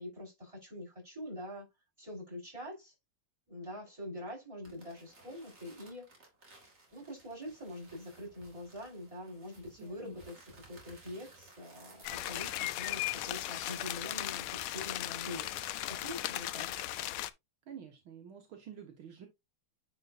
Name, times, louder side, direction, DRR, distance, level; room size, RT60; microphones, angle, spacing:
voice 1, 0.0-1.7 2.0-2.9 3.5-6.0 6.9-10.3 10.7-15.5 15.9-16.9, left 1 dB, 15° right, 5.5 m, -44 dB
sound 1, 4.6-15.7, right 2 dB, 40° right, 2.9 m, -58 dB
voice 2, 9.8-10.2 17.7-19.3, right 8 dB, 75° right, 2.1 m, -49 dB
sound 2, 12.0-17.3, left 14 dB, 80° left, 1.4 m, -37 dB
10.0 x 4.5 x 2.7 m
omnidirectional pair, 2.3 m